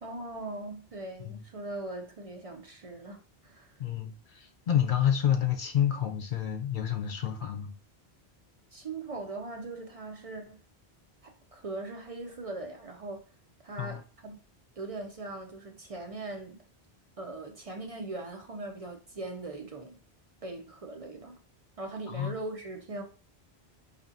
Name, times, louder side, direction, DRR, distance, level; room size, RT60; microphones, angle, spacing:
voice 1, 0.0-3.8 8.7-10.6 11.2-13.2 13.6-14.4 14.8-16.6 17.2-20.0 20.4-21.4 21.8-23.0, right 2 dB, 45° right, 0.5 m, -40 dB
voice 2, 3.8-7.7 13.8-14.0 22.1-22.3, left 10 dB, 55° left, 0.7 m, -29 dB
4.9 x 2.6 x 2.7 m
omnidirectional pair, 1.1 m